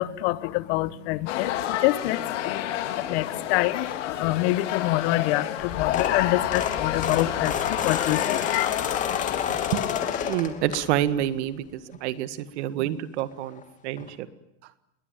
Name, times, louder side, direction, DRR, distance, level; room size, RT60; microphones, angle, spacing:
voice 1, 0.0-8.7, left 17 dB, 55° left, 1.3 m, -26 dB
sound 1, 1.3-10.3, left 12 dB, 75° left, 3.4 m, -29 dB
sound 2, 5.6-11.2 11.7-12.0 13.2-13.3 13.5-13.6 14.0-14.1, left 7 dB, 20° left, 2.5 m, -31 dB
voice 2, 9.5-9.8 10.2-14.3, right 12 dB, 65° right, 1.8 m, -28 dB
28.0 x 21.5 x 9.2 m
supercardioid pair, 145°, 37 cm